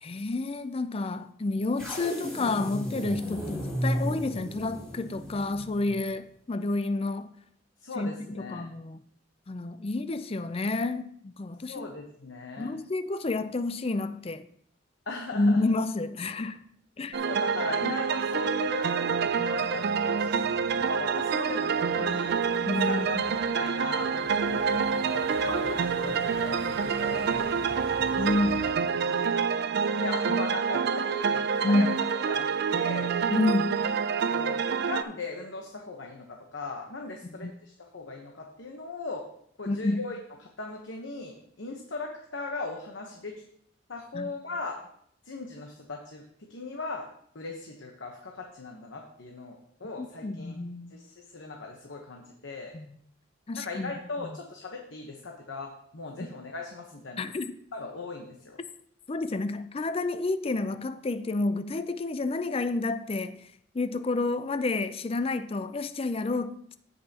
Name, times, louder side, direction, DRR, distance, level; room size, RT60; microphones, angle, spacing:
voice 1, 0.0-7.3 8.0-9.0 9.5-11.9 12.6-14.5 15.3-16.6 17.0-17.2 17.8-18.0 22.7-23.2 28.1-28.6 30.3-30.4 31.6-31.9 33.3-33.8 37.2-37.5 39.7-40.0 44.1-44.3 50.0-50.9 52.7-52.9 53.5-53.9 54.2-54.3 56.2-56.3 57.2-57.6 59.1-63.4 63.7-66.8, left 2 dB, 30° left, 0.4 m, -29 dB
sound 1, 1.8-6.1, equal, 5° left, 3.0 m, -34 dB
voice 2, 7.8-8.7 11.7-12.7 15.1-15.6 17.2-22.3 22.9-28.2 28.6-29.0 30.0-31.9 32.3-33.2 34.3-39.2 39.6-43.4 43.9-44.8 45.2-46.2 46.5-47.1 47.3-50.5 50.9-52.7 53.6-57.2 57.7-58.6, left 3 dB, 70° left, 1.0 m, -38 dB
sound 2, 17.1-35.0, right 6 dB, 55° right, 0.4 m, -27 dB
Motor vehicle (road), 17.5-28.7, right 1 dB, 35° right, 1.4 m, -45 dB
15.5 x 5.5 x 2.9 m
head